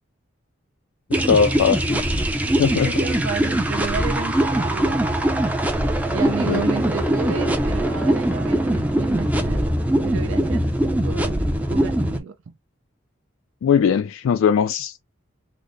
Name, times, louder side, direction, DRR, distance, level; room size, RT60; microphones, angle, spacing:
sound 1, 1.1-12.2, right 1 dB, 5° right, 0.4 m, -22 dB
voice 1, 1.3-2.1 2.6-2.9 6.5-6.6 13.6-15.0, left 7 dB, 80° left, 0.3 m, -19 dB
voice 2, 2.8-5.0 6.1-9.7 10.0-10.7 11.0-12.5, right 5 dB, 75° right, 0.5 m, -31 dB
3.9 x 2.0 x 3.2 m
head